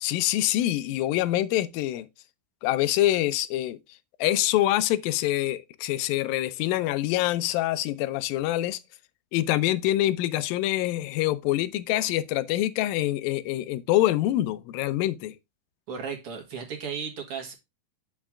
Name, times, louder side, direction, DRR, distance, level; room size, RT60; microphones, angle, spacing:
voice 1, 0.0-2.1 2.6-3.8 4.2-8.8 9.3-15.4, left 14 dB, 90° left, 2.4 m, -25 dB
voice 2, 15.9-17.5, right 6 dB, 55° right, 1.9 m, -35 dB
8.8 x 6.0 x 3.6 m
omnidirectional pair, 4.0 m